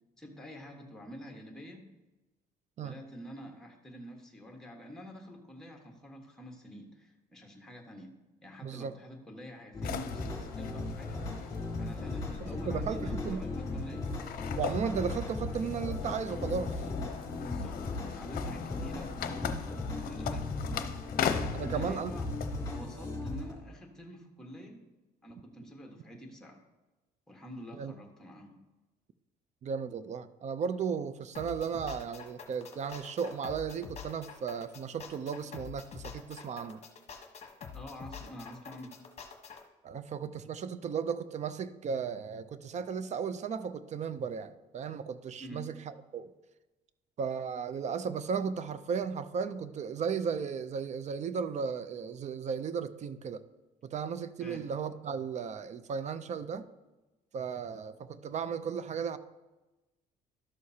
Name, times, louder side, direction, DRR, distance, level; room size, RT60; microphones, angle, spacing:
voice 1, 0.2-1.8 2.8-8.1 8.4-11.2 11.8-14.1 17.3-20.5 21.6-22.3 22.7-24.8 25.2-26.6 27.3-28.6 37.7-38.9 45.4-45.6 54.4-54.6, equal, 5° left, 1 dB, 1.4 m, -47 dB
voice 2, 8.6-8.9 12.4-13.4 14.6-16.8 21.5-22.3 27.8-27.9 29.6-36.8 39.8-46.3 47.2-53.4 53.8-56.7 57.3-59.2, right 6 dB, 45° right, 13 dB, 0.5 m, -35 dB
sound 1, 9.7-23.5, left 2 dB, 20° left, 3.1 m, -37 dB
sound 2, 9.8-22.8, left 8 dB, 60° left, 0.7 m, -39 dB
sound 3, 31.3-39.6, left 6 dB, 40° left, 1.1 m, -46 dB
12.5 x 6.4 x 2.8 m, 1.1 s
cardioid pair, 110°, 17 cm